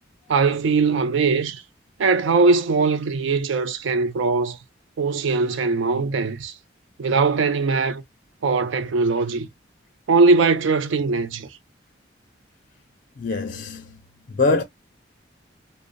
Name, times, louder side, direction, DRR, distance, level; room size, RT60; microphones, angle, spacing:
voice 1, 0.3-1.6 2.0-4.6 5.0-6.5 7.0-8.0 8.4-9.5 10.1-11.5, right 4 dB, 80° right, 0.4 m, -20 dB
voice 2, 13.2-14.0 14.3-14.6, left 3 dB, 45° left, 0.4 m, -23 dB
2.5 x 2.0 x 2.4 m
head